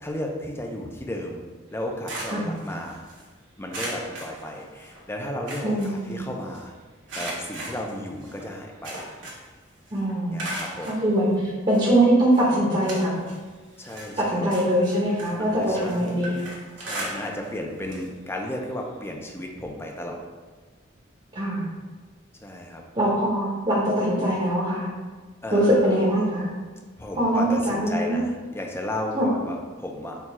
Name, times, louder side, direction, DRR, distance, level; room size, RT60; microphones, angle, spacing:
voice 1, 0.0-1.4 1.7-3.0 3.6-6.7 7.1-9.1 10.3-11.0 13.8-14.6 15.3-16.1 16.8-20.2 22.4-22.8 25.4-25.9 27.0-30.2, left 1 dB, 10° left, 1 dB, 0.4 m, -34 dB
sound 1, 1.7-3.2 3.7-5.0 5.3-6.6 7.1-9.6 9.9-11.0 11.7-11.8 12.3-13.4 13.8-17.6 17.8-18.1 18.4-18.5 19.7-19.8, right 1 dB, 70° right, 1.1 m, -37 dB
voice 2, 5.6-6.2 9.9-10.4 10.9-11.3 11.7-13.1 14.2-16.4 21.3-21.7 22.9-24.9 25.5-26.5 27.2-28.2 29.1-29.3, right 1 dB, 30° right, -6 dB, 0.8 m, -22 dB
4.6 x 2.3 x 4.1 m, 1.4 s
head